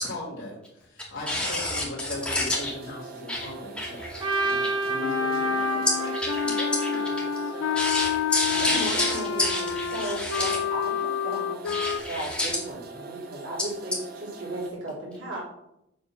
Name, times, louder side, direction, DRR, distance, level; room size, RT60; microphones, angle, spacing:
voice 1, 0.0-7.8 8.5-8.8, left 1 dB, 70° left, 2.3 m, -39 dB
voice 2, 1.3-2.7 3.3-3.5 3.8-4.5 6.1-6.3 6.8-6.9 7.7-10.6 11.6-12.6, left 1 dB, 5° left, 2.0 m, -29 dB
sound 1, 2.1-14.7, right 4 dB, 50° right, 1.0 m, -43 dB
Trumpet, 4.2-8.4, right 2 dB, 20° right, 0.9 m, -30 dB
Wind instrument woodwind instrument, 5.0-12.0, left 9 dB, 90° left, 0.3 m, -29 dB
voice 3, 8.6-11.7 12.1-15.4, right 1 dB, 90° right, 3.0 m, -35 dB
7.8 x 4.4 x 5.9 m
head